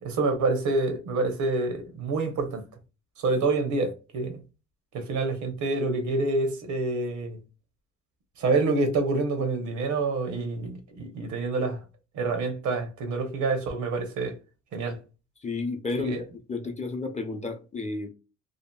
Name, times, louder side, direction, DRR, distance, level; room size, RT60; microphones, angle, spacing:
voice 1, 0.0-2.6 3.2-4.4 4.9-7.4 8.4-11.8 12.1-14.4 14.7-15.0 16.0-16.2, right 3 dB, 75° right, 0.9 m, -27 dB
voice 2, 15.4-18.1, left 3 dB, 25° left, 0.6 m, -32 dB
2.8 x 2.5 x 2.3 m
cardioid pair, 90°, 30 cm